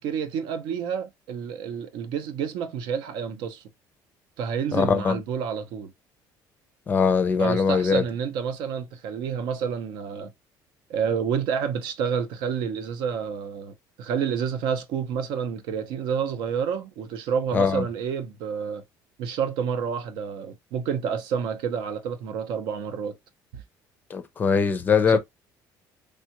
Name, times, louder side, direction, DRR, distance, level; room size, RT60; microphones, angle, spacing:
voice 1, 0.0-3.6 4.4-5.9 7.4-10.3 10.9-18.8 19.2-23.1 23.5-23.6 25.1-25.2, right 7 dB, 75° right, 0.7 m, -29 dB
voice 2, 4.7-5.2 6.9-8.0 17.5-17.8 24.1-25.2, left 6 dB, 25° left, 0.4 m, -21 dB
3.3 x 2.3 x 2.9 m
cardioid pair, 160°, 8 cm